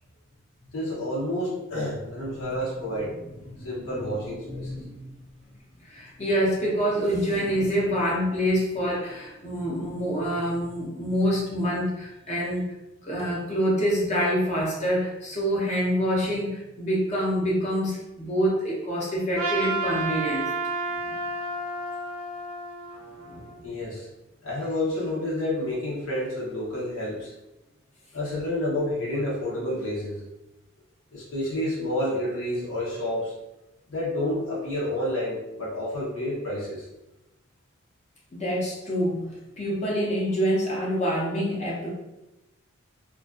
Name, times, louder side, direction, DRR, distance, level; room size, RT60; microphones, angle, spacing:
voice 1, 0.7-3.1 3.6-4.7 23.6-24.1 24.4-27.3 28.1-30.2 31.1-33.3 33.9-36.9, left 1 dB, 90° left, -6 dB, 0.7 m, -29 dB
voice 2, 3.5-4.1 4.4-5.0 5.8-12.7 13.0-20.4 23.2-23.4 38.3-39.3 39.6-41.9, equal, 30° left, -4 dB, 0.5 m, -26 dB
Trumpet, 19.4-23.7, right 2 dB, 85° right, 0.5 m, -31 dB
2.4 x 2.2 x 2.3 m, 0.95 s
head